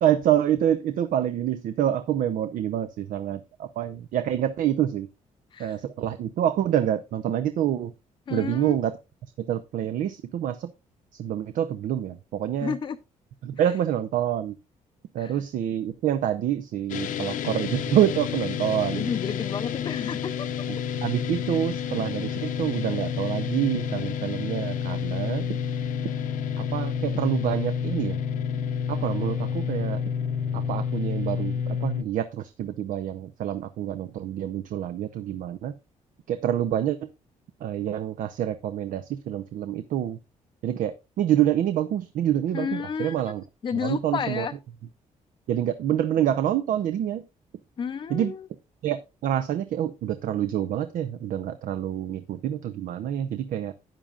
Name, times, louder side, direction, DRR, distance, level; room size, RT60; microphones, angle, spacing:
voice 1, 0.0-5.1 5.6-7.9 8.3-8.9 9.4-10.7 11.2-12.7 13.4-14.6 15.1-19.1 21.0-25.5 26.6-28.2 28.9-30.0 30.5-35.7 36.3-37.1 37.6-40.2 40.6-43.4 43.8-44.5 45.5-47.2 48.1-48.3 48.8-53.7, right 11 dB, 75° right, 0.6 m, -27 dB
voice 2, 8.3-8.8 12.6-13.0 15.2-15.4 19.0-20.5 21.5-21.6 42.5-43.3 43.6-44.5 47.8-48.5, left 7 dB, 35° left, 0.5 m, -31 dB
sound 1, 16.9-32.0, left 7 dB, 75° left, 0.7 m, -29 dB
12.5 x 8.9 x 2.4 m
cardioid pair, 115°, 14 cm